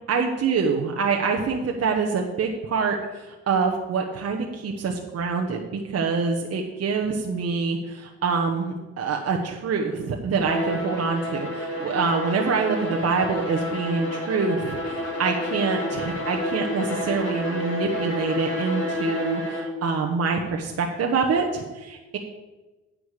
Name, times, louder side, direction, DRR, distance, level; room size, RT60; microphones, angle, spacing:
voice 1, 0.1-22.2, right 5 dB, 55° right, 2 dB, 1.1 m, -26 dB
Bowed string instrument, 10.3-19.8, left 1 dB, 55° left, 4.0 m, -29 dB
9.8 x 5.1 x 8.0 m, 1.2 s
cardioid pair, 90°, 30 cm